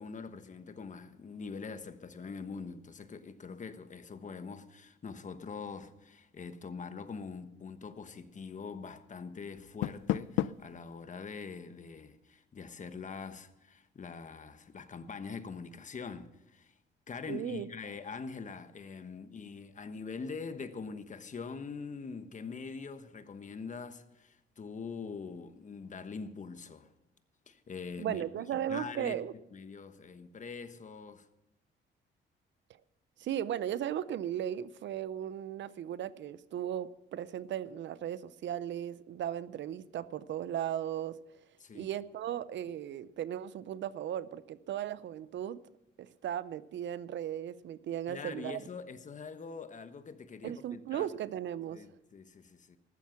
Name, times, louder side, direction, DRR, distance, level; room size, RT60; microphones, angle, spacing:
voice 1, 0.0-16.7 17.1-26.9 27.5-28.2 28.5-29.2 29.5-31.3 41.6-41.9 48.1-51.1 51.7-52.8, left 5 dB, 40° left, 1.2 m, -43 dB
Door, 9.5-10.8, left 12 dB, 80° left, 0.5 m, -33 dB
voice 2, 17.3-17.7 28.0-29.3 33.2-41.1 41.7-45.6 46.0-48.7 50.4-51.8, right 10 dB, 65° right, 0.6 m, -36 dB
14.5 x 12.0 x 5.9 m
cardioid pair, 90°, 20 cm